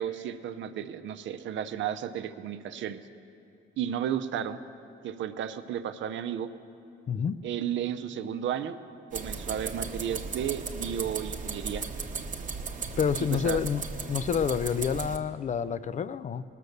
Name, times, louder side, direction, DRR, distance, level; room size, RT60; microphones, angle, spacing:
voice 1, 0.0-3.0 3.8-4.6 5.0-6.5 7.4-8.8 9.1-11.8 13.4-13.6, right 9 dB, 70° right, 10 dB, 0.6 m, -33 dB
voice 2, 7.1-7.4 13.0-13.8 14.1-16.4, left 7 dB, 40° left, 15 dB, 0.4 m, -28 dB
sound 1, 9.1-15.2, right 4 dB, 40° right, 0.9 m, -36 dB
18.5 x 6.7 x 6.6 m, 2.7 s
cardioid pair, 90°, 20 cm